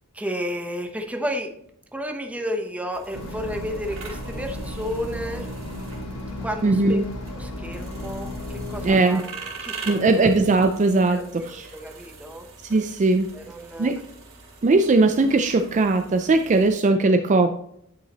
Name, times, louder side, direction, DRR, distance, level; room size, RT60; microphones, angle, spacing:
voice 1, 0.1-1.5 1.9-5.5 6.4-7.0 7.3-10.3 11.1-12.5 13.3-14.0, equal, 5° right, 4 dB, 0.8 m, -32 dB
sound 1, 2.9-16.7, right 4 dB, 65° right, 2.5 m, -43 dB
sound 2, 3.1-8.9, left 1 dB, 80° left, 1.2 m, -34 dB
voice 2, 6.6-7.1 8.8-9.2 9.9-11.7 12.6-13.3 13.8-14.0 14.6-17.6, right 3 dB, 35° right, 6 dB, 0.4 m, -19 dB
10.0 x 5.6 x 2.9 m, 0.69 s
head